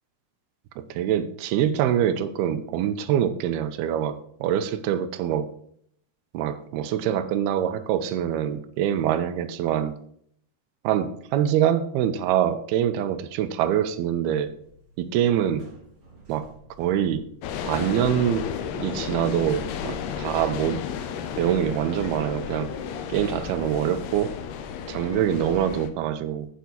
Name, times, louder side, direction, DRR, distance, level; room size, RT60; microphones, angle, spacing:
voice 1, 0.8-5.5 6.3-9.9 10.8-14.5 15.0-15.7 16.3-16.5 16.8-17.3 17.7-20.8 21.4-22.7 23.1-24.3 24.9-26.5, right 10 dB, 85° right, 10 dB, 2.6 m, -25 dB
sound 1, 14.2-20.8, left 1 dB, 30° right, 2.0 m, -48 dB
sound 2, 17.4-25.9, left 7 dB, 80° left, 2.8 m, -33 dB
9.2 x 7.0 x 4.4 m, 0.65 s
omnidirectional pair, 4.6 m